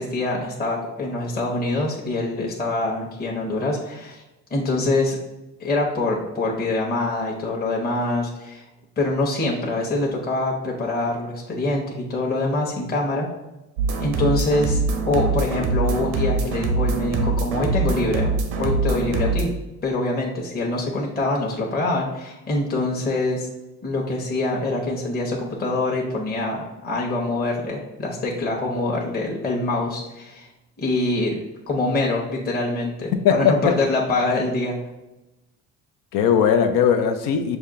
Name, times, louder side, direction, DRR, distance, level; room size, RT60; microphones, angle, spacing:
voice 1, 0.0-4.2 4.5-5.2 5.6-8.6 9.0-13.3 14.0-19.5 19.8-23.5 23.8-30.5 30.8-34.8, left 2 dB, 30° left, -2 dB, 0.9 m, -25 dB
sound 1, 13.8-19.4, right 3 dB, 85° right, 0.7 m, -23 dB
voice 2, 33.2-33.7 36.1-37.6, left 7 dB, 80° left, 7 dB, 0.6 m, -18 dB
5.4 x 2.3 x 3.6 m, 1.0 s
supercardioid pair, 80°, 32 cm